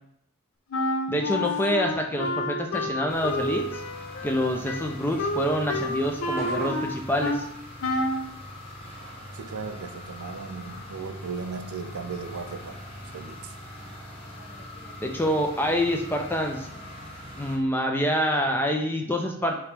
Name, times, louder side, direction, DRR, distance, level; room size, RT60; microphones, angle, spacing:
Wind instrument woodwind instrument, 0.7-7.5 7.8-8.3, left 1 dB, 65° left, 0.6 m, -29 dB
voice 1, 1.1-3.8 4.2-7.4 15.0-16.7 17.4-19.6, equal, 10° left, 3 dB, 0.4 m, -26 dB
sound 1, 3.1-17.6, left 1 dB, 25° left, 0.8 m, -42 dB
sound 2, 4.9-9.7 9.9-11.9, left 1 dB, 10° right, 0.9 m, -46 dB
voice 2, 9.3-12.8 13.1-13.5, right 5 dB, 75° right, 8 dB, 0.5 m, -37 dB
4.8 x 3.0 x 3.3 m, 0.71 s
head